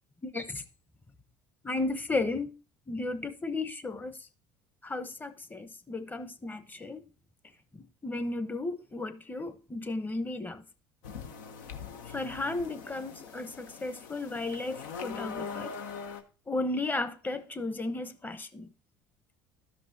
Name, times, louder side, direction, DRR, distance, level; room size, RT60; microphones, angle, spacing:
voice 1, 0.2-0.6 1.6-2.5 2.9-4.2 4.8-7.1 8.0-10.6 12.1-15.8 16.5-18.7, left 2 dB, 20° left, 0.9 m, -34 dB
sound 1, 11.0-16.2, left 6 dB, 85° left, 0.8 m, -42 dB
12.5 x 5.4 x 2.7 m
hypercardioid pair, 75°, 10 cm